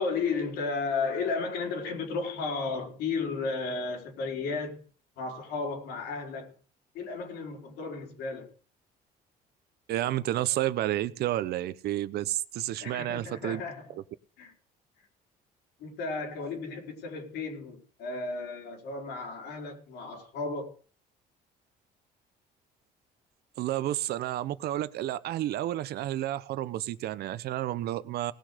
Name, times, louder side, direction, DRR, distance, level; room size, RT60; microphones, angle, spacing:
voice 1, 0.0-4.8 5.2-6.5 6.9-8.5 12.8-14.0 14.4-14.5 15.8-20.7, left 4 dB, 85° left, 4.2 m, -33 dB
voice 2, 9.9-13.6 23.6-28.3, right 13 dB, 70° right, 0.8 m, -30 dB
19.0 x 6.4 x 6.7 m
cardioid pair, 110°, 17 cm